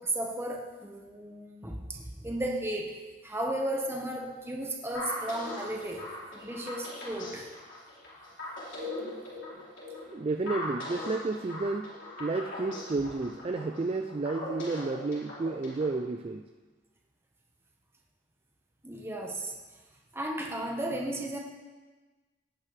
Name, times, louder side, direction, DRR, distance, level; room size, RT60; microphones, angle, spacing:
voice 1, 0.0-2.9 3.2-6.0 6.3-7.4 18.8-19.5 20.1-21.4, right 1 dB, 15° right, 0 dB, 1.3 m, -34 dB
sound 1, 4.9-16.0, left 1 dB, 70° left, 4.3 m, -40 dB
voice 2, 10.1-11.9 12.2-16.4, right 3 dB, 30° right, 6 dB, 0.4 m, -31 dB
18.0 x 8.9 x 3.4 m, 1.3 s
head